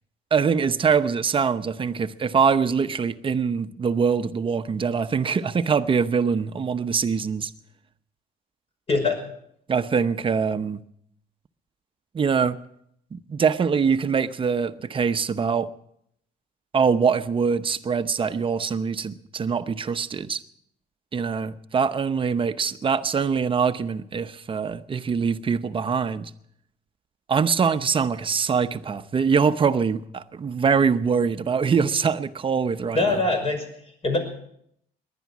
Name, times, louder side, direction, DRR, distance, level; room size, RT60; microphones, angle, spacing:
voice 1, 0.3-7.5 9.7-10.8 12.1-12.6 13.1-15.7 16.7-20.4 21.1-26.3 27.3-33.2, right 6 dB, 30° right, 11 dB, 0.8 m, -23 dB
voice 2, 32.9-33.7 34.0-34.2, left 3 dB, 35° left, 5 dB, 5.7 m, -22 dB
19.5 x 11.5 x 6.1 m, 0.72 s
cardioid pair, 110°, 17 cm